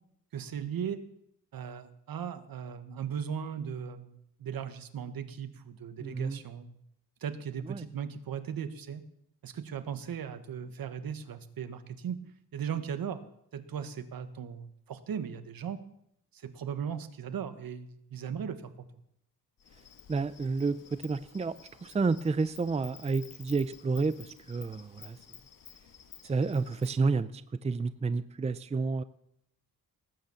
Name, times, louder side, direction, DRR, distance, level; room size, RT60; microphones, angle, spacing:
voice 1, 0.3-1.0 1.5-6.8 7.2-9.0 9.4-12.2 12.5-13.2 13.5-15.8 16.3-18.9, right 8 dB, 70° right, 10 dB, 1.5 m, -37 dB
voice 2, 6.0-6.4 7.7-7.9 20.1-25.2 26.2-29.0, right 4 dB, 20° right, 14 dB, 0.5 m, -30 dB
Insect, 19.6-27.0, left 8 dB, 65° left, 1.7 m, -53 dB
19.0 x 9.3 x 7.1 m, 0.75 s
wide cardioid pair, 125°, 36 cm